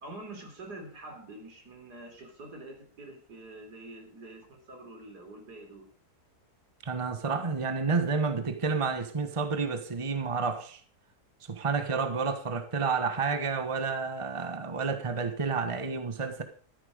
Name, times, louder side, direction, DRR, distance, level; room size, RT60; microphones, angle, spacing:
voice 1, 0.0-5.9, right 2 dB, 85° right, 4.2 m, -46 dB
voice 2, 6.8-10.8 11.5-16.4, right 4 dB, 20° right, 1.3 m, -30 dB
13.0 x 10.5 x 5.1 m
omnidirectional pair, 1.7 m